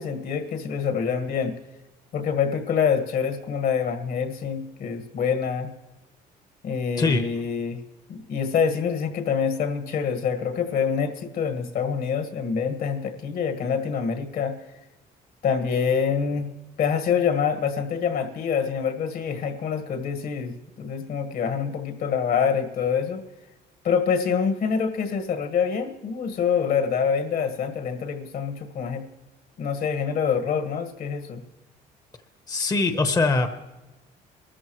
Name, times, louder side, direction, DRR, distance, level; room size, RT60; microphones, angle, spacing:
voice 1, 0.0-1.5 2.1-5.7 6.6-7.8 8.1-14.6 15.4-16.5 16.8-23.2 23.8-29.0 29.6-31.4, left 6 dB, 65° left, 7 dB, 1.7 m, -26 dB
voice 2, 32.5-33.5, left 3 dB, 20° left, 7 dB, 0.9 m, -22 dB
23.0 x 13.5 x 3.1 m, 1.1 s
cardioid pair, 110°, 17 cm